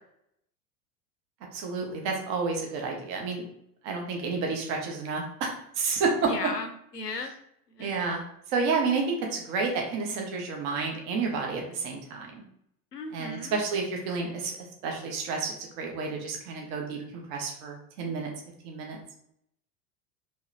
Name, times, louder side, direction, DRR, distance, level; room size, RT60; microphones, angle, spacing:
voice 1, 1.5-3.4 3.8-6.3 7.8-8.2 8.5-12.4 13.1-14.5 14.8-18.3 18.6-19.0, right 4 dB, 35° right, 1 dB, 1.0 m, -30 dB
voice 2, 6.2-7.3 7.7-8.0 12.9-13.6, left 3 dB, 90° left, 5 dB, 0.7 m, -36 dB
5.1 x 3.2 x 2.6 m, 0.72 s
figure-of-eight pair, 85°, 47 cm